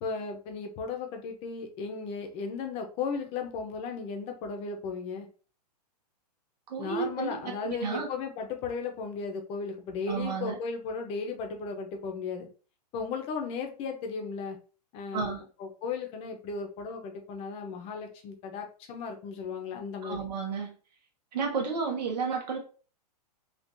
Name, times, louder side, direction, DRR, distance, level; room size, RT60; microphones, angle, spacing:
voice 1, 0.0-5.3 6.8-12.5 12.9-14.6 14.9-20.3, left 5 dB, 30° left, 4 dB, 0.6 m, -35 dB
voice 2, 6.7-8.1 10.1-10.6 15.1-15.4 20.0-20.8 21.3-22.6, right 5 dB, 85° right, 1 dB, 1.1 m, -32 dB
3.7 x 2.4 x 2.5 m, 0.38 s
hypercardioid pair, 145°, 21 cm